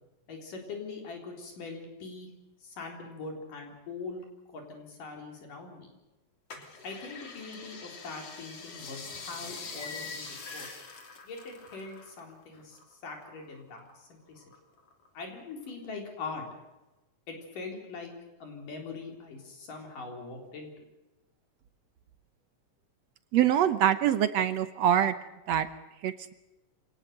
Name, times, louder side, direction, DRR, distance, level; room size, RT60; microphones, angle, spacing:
voice 1, 0.3-2.3 2.6-5.9 6.8-10.8 11.2-14.4 15.1-16.4 17.3-18.1 18.4-20.7, left 4 dB, 65° left, 2 dB, 5.5 m, -42 dB
sound 1, 6.5-12.3 12.6-13.9 14.4-15.2 15.7-15.8, left 4 dB, 45° left, 4.0 m, -44 dB
voice 2, 23.3-25.1 25.5-25.7 26.0-26.3, right 10 dB, 70° right, 11 dB, 1.7 m, -24 dB
26.0 x 18.5 x 6.7 m, 1.0 s
omnidirectional pair, 4.0 m